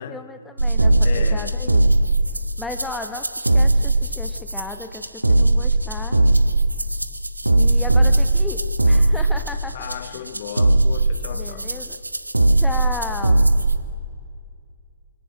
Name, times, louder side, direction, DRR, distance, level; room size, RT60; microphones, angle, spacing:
voice 1, 0.0-1.9 2.6-6.2 7.6-9.9 11.3-12.0 12.5-13.4, left 2 dB, 5° left, 1.1 m, -35 dB
sound 1, 0.6-13.8, right 2 dB, 80° right, 1.0 m, -19 dB
voice 2, 1.0-1.6 9.7-11.8, left 9 dB, 40° left, 1.1 m, -35 dB
24.0 x 17.5 x 6.2 m
figure-of-eight pair, 125°, 0 cm